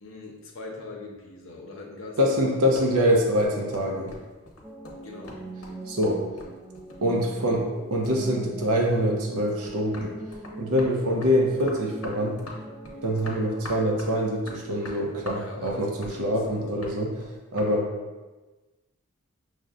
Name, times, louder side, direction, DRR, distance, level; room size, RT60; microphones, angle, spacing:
voice 1, 0.0-2.7 5.0-5.4 15.3-16.4, left 3 dB, 60° left, -1 dB, 0.6 m, -42 dB
voice 2, 2.2-4.1 5.9-6.2 7.0-10.1 10.6-12.4 13.0-17.2 17.5-17.9, equal, 85° right, 0 dB, 0.6 m, -24 dB
sound 1, 2.4-7.8 8.0-9.1 9.5-17.7, left 2 dB, 85° left, 0.9 m, -44 dB
sound 2, 4.6-16.0, right 1 dB, 5° right, 0.4 m, -42 dB
6.2 x 2.1 x 2.4 m, 1.2 s
head